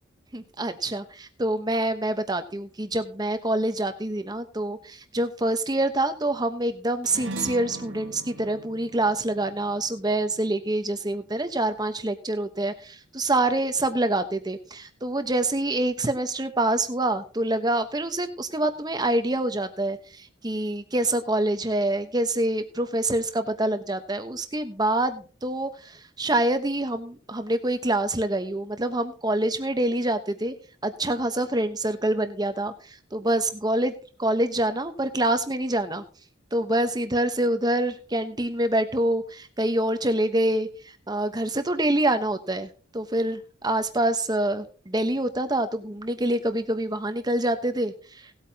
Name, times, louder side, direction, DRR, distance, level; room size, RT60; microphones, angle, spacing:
voice 1, 0.3-30.5 30.8-33.9 34.2-36.0 36.5-40.7 41.1-48.3, right 1 dB, 20° right, 9 dB, 1.1 m, -26 dB
sound 1, 7.0-11.7, right 2 dB, 65° right, 1.8 m, -40 dB
18.0 x 8.6 x 2.9 m, 0.37 s
head